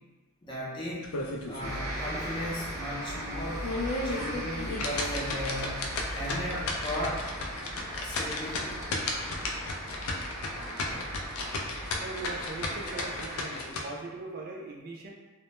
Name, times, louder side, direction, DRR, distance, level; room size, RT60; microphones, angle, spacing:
voice 1, 0.4-1.0 1.5-3.7 4.0-7.3 8.0-8.8, equal, 20° left, -8 dB, 0.5 m, -36 dB
sound 1, 1.0-1.8 2.2-2.3 2.8-2.9 3.4-13.8, left 2 dB, 80° left, 0.4 m, -34 dB
sound 2, 1.6-13.4, equal, 15° right, 0.7 m, -38 dB
voice 2, 11.9-15.1, right 3 dB, 45° right, -1 dB, 0.3 m, -40 dB
2.1 x 2.0 x 2.9 m, 1.3 s
head